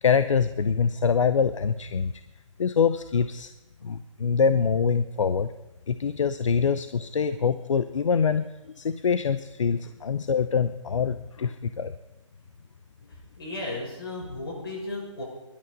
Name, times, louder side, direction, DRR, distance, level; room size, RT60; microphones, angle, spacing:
voice 1, 0.0-2.1 2.6-3.5 3.8-5.5 5.9-8.5 8.7-11.9, left 6 dB, 70° left, 12 dB, 0.8 m, -24 dB
voice 2, 13.0-15.2, left 2 dB, 45° left, -1 dB, 6.7 m, -35 dB
18.5 x 12.0 x 5.3 m, 1.0 s
hypercardioid pair, 175°, 17 cm